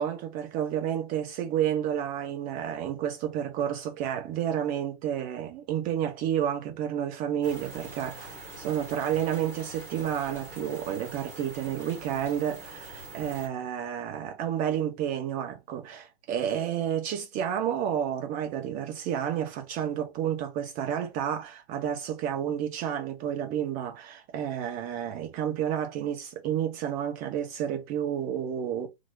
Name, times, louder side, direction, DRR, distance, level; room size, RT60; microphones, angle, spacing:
voice 1, 0.0-28.9, right 9 dB, 25° right, 0.9 m, -30 dB
sound 1, 7.4-13.5, right 1 dB, 10° left, 1.0 m, -44 dB
3.0 x 2.1 x 3.7 m
figure-of-eight pair, 115°, 31 cm